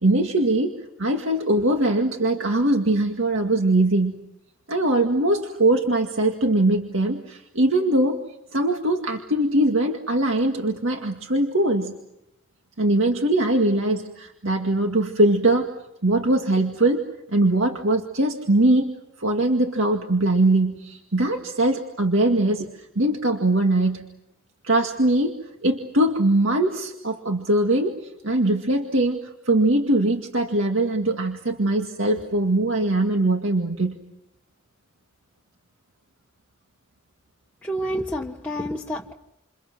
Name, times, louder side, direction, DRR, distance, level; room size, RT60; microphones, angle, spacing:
voice 1, 0.0-4.2 4.7-8.2 8.5-11.9 12.8-15.7 16.0-17.0 17.3-18.9 19.2-22.7 23.0-24.0 24.6-29.2 29.5-34.0, right 1 dB, 75° right, 3 dB, 2.1 m, -21 dB
voice 2, 37.6-39.1, equal, 5° left, -2 dB, 1.3 m, -29 dB
29.0 x 28.5 x 6.1 m, 0.84 s
head